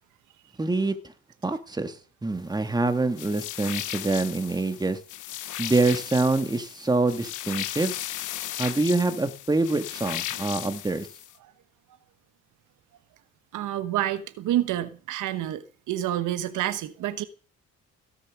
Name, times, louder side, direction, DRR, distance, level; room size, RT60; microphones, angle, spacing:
voice 1, 0.6-0.9 1.4-2.0 2.2-5.0 5.6-7.9 8.6-11.1, right 3 dB, 15° right, 1.5 m, -25 dB
sound 1, 3.2-11.3, left 13 dB, 85° left, 1.0 m, -36 dB
voice 2, 13.5-17.2, right 12 dB, 85° right, 1.1 m, -28 dB
16.5 x 7.2 x 6.1 m
cardioid pair, 90°, 30 cm